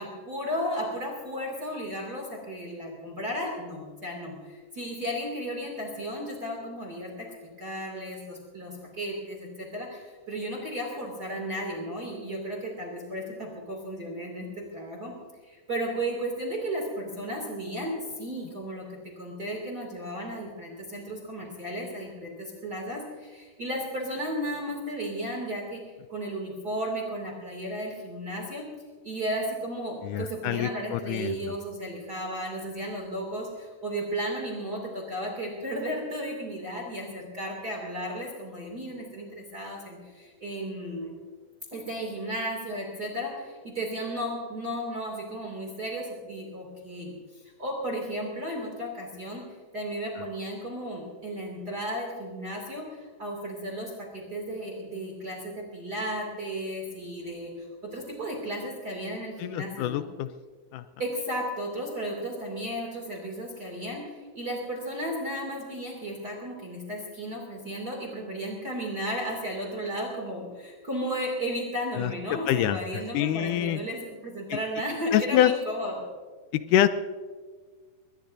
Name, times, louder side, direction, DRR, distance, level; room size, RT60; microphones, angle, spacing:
voice 1, 0.0-7.3 7.6-15.1 15.5-25.8 26.1-28.7 29.0-41.1 41.7-49.4 49.7-60.0 61.0-76.0, equal, 30° right, -1 dB, 2.8 m, -34 dB
voice 2, 30.0-31.4 59.4-60.3 60.7-60.8 72.0-72.1 72.5-73.8 74.5-74.6 75.1-75.5 76.5-76.9, left 12 dB, 80° left, 11 dB, 1.9 m, -25 dB
22.0 x 20.0 x 2.7 m, 1.5 s
omnidirectional pair, 4.1 m